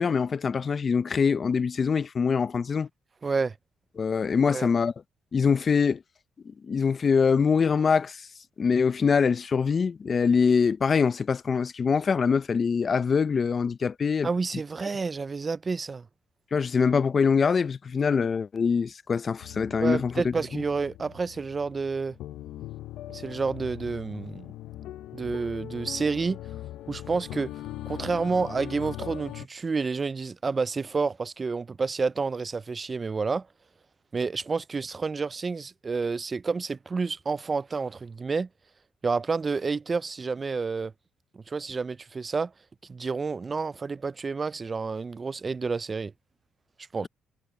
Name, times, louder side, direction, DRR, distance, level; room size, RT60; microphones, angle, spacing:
voice 1, 0.0-2.9 4.0-4.9 5.3-6.0 6.5-8.3 8.6-14.3 16.5-20.6, left 5 dB, 40° left, 0.5 m, -24 dB
voice 2, 3.2-3.5 4.5-4.7 14.2-16.0 19.8-22.2 23.1-24.5 25.1-26.4 26.9-27.5 27.9-33.5 34.1-38.5 39.0-40.9 41.5-42.5 42.9-46.1 46.9-47.1, right 4 dB, 30° right, 0.3 m, -29 dB
sound 1, 19.4-29.5, left 14 dB, 80° left, 0.6 m, -41 dB
cardioid pair, 90°, 0 cm